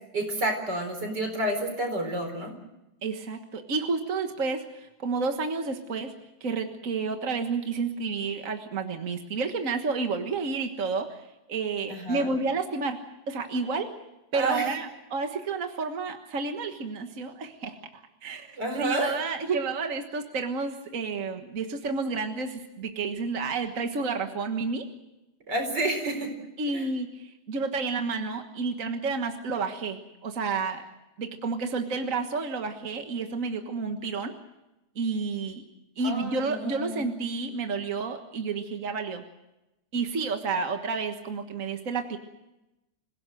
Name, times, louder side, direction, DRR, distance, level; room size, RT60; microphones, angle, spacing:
voice 1, 0.1-2.5 11.9-12.3 14.3-14.7 18.6-19.2 25.5-26.3 26.7-26.9 36.0-37.1, right 1 dB, 90° right, 5 dB, 5.0 m, -30 dB
voice 2, 3.0-6.1 6.4-13.0 13.3-13.9 14.3-24.9 26.6-30.9 31.2-34.3 35.0-35.6 36.0-39.2 39.9-42.2, right 4 dB, 50° right, 5 dB, 1.8 m, -30 dB
27.0 x 17.0 x 7.7 m, 0.94 s
omnidirectional pair, 1.8 m